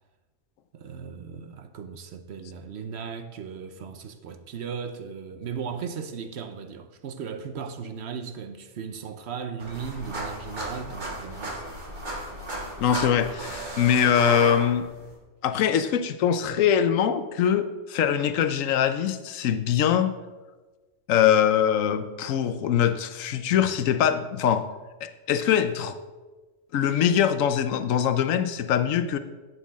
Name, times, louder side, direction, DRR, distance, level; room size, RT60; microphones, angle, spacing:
voice 1, 0.7-11.6, right 6 dB, 60° right, 0.9 m, -37 dB
sound 1, 9.6-15.1, right 2 dB, 35° right, 1.8 m, -34 dB
voice 2, 12.8-14.9 15.4-20.1 21.1-24.6 25.0-26.0 26.7-29.2, left 9 dB, 85° left, 1.0 m, -23 dB
11.5 x 8.5 x 3.6 m
omnidirectional pair, 1.3 m